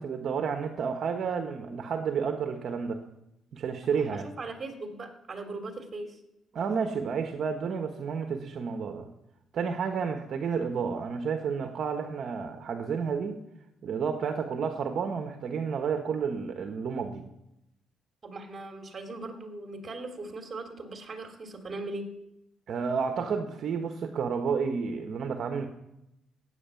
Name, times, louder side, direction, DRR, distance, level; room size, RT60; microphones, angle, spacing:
voice 1, 0.0-3.0 3.5-4.3 6.5-9.1 9.5-13.4 13.8-17.2 22.7-25.7, right 6 dB, 60° right, 6 dB, 1.3 m, -31 dB
voice 2, 4.1-6.2 18.2-22.1, right 2 dB, 35° right, 5 dB, 2.9 m, -39 dB
16.5 x 8.6 x 7.1 m, 0.87 s
cardioid pair, 90°, 0 cm